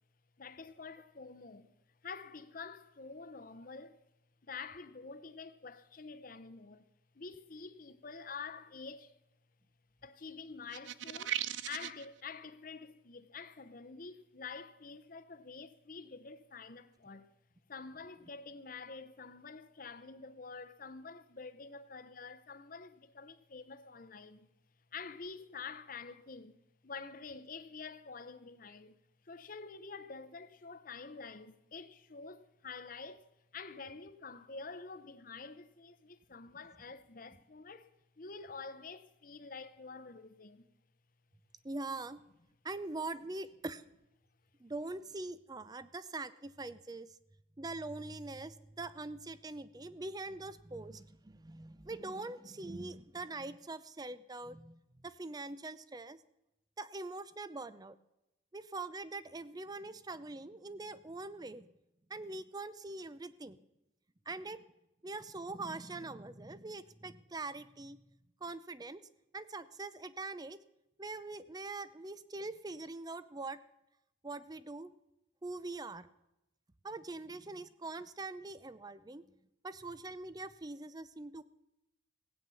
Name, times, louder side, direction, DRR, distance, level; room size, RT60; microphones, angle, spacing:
voice 1, 0.4-1.7 2.0-4.0 4.4-6.8 7.1-9.1 10.0-17.3 17.7-24.5 24.9-29.0 29.2-40.7, left 4 dB, 45° left, 0.8 m, -48 dB
sound 1, 10.7-12.0, right 11 dB, 70° right, 0.5 m, -37 dB
voice 2, 41.6-42.2 42.6-43.8 44.6-47.2 47.6-56.2 56.8-58.0 58.5-61.7 62.1-63.6 64.3-64.6 65.0-68.0 68.4-69.0 69.3-70.6 71.0-73.6 74.2-74.9 75.4-76.1 76.8-79.2 79.6-81.4, right 2 dB, 20° right, 0.5 m, -43 dB
16.0 x 9.2 x 7.0 m
head